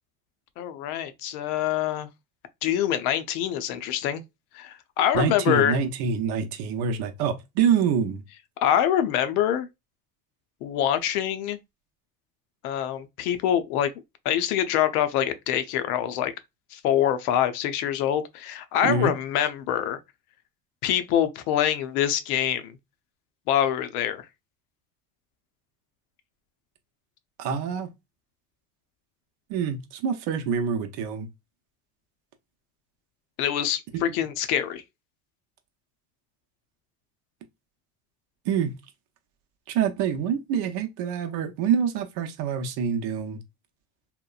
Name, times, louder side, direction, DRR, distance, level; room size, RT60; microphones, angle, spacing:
voice 1, 0.6-2.1 2.6-4.2 4.5-5.8 8.6-9.7 10.6-11.6 12.6-13.9 14.2-16.3 16.7-20.0 20.8-22.8 23.5-24.3 33.4-34.8, left 10 dB, 85° left, 0.6 m, -25 dB
voice 2, 5.1-8.2 18.8-19.1 27.4-27.9 29.5-31.3 33.9-34.1 38.5-38.8 39.7-43.4, right 7 dB, 65° right, 0.7 m, -26 dB
2.9 x 2.1 x 2.3 m
hypercardioid pair, 75°, 43 cm